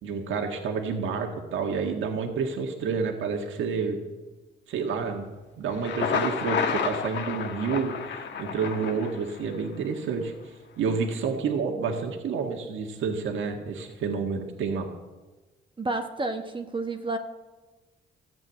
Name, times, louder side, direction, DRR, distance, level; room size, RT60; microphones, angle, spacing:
voice 1, 0.0-4.0 4.7-5.3 5.6-10.3 10.8-14.9, right 5 dB, 75° right, 3 dB, 1.7 m, -29 dB
Thunder, 5.7-9.7, left 7 dB, 70° left, 1.2 m, -30 dB
voice 2, 15.8-17.2, right 2 dB, 25° right, 5 dB, 1.2 m, -30 dB
14.0 x 8.3 x 8.1 m, 1.2 s
cardioid pair, 90°, 20 cm